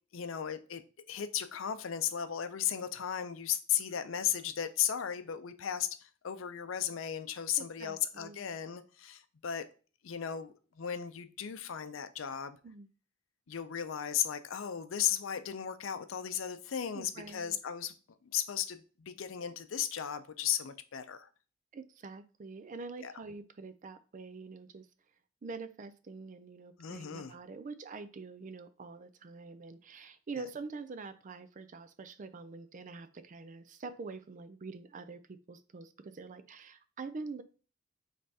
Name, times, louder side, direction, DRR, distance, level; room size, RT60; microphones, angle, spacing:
voice 1, 0.1-0.8 1.1-9.6 10.0-12.6 13.5-17.9 18.3-21.3 23.0-23.1 26.8-27.3, left 9 dB, 80° left, 0.5 m, -35 dB
voice 2, 7.6-8.4 12.6-12.9 16.9-17.6 21.7-24.9 25.4-37.4, right 4 dB, 40° right, 0.4 m, -45 dB
5.2 x 3.3 x 2.8 m
head